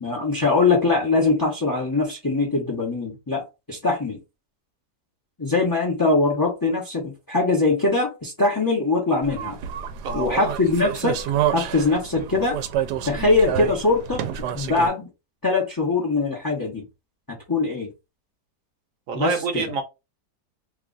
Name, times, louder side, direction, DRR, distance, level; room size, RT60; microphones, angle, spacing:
voice 1, 0.0-4.2 5.4-9.6 10.1-11.2 11.5-12.6 13.0-14.2 14.5-15.1 15.4-16.8 17.5-17.9 19.1-19.6, left 3 dB, 20° left, 0.6 m, -22 dB
sound 1, 9.2-14.9, right 9 dB, 85° right, 1.2 m, -28 dB
voice 2, 10.0-10.5 19.1-19.8, right 5 dB, 65° right, 0.9 m, -26 dB
2.9 x 2.3 x 3.8 m
omnidirectional pair, 1.7 m